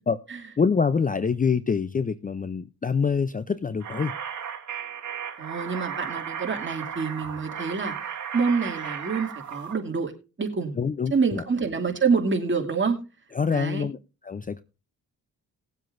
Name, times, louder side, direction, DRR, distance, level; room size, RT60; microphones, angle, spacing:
voice 1, 0.6-4.1 10.7-11.4 13.3-14.0 14.2-14.6, left 5 dB, 25° left, 0.5 m, -25 dB
sound 1, 3.8-9.7, right 8 dB, 55° right, 1.8 m, -35 dB
voice 2, 5.4-7.9 8.3-10.1 10.4-10.7 11.1-13.0 13.5-13.8, right 5 dB, 35° right, 2.5 m, -26 dB
19.5 x 7.6 x 2.6 m
cardioid pair, 90°, 35 cm